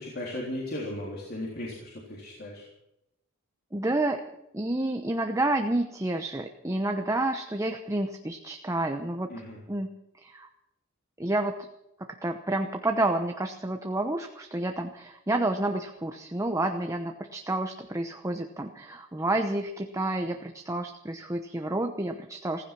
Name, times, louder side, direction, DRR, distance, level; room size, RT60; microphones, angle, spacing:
voice 1, 0.0-2.6 9.3-9.6, left 1 dB, 50° left, -3 dB, 3.6 m, -36 dB
voice 2, 3.7-4.2 4.5-9.3 9.7-9.9 10.2-10.5 11.2-11.5 12.2-22.6, right 2 dB, 15° right, 5 dB, 0.9 m, -29 dB
15.5 x 15.5 x 6.0 m, 0.87 s
head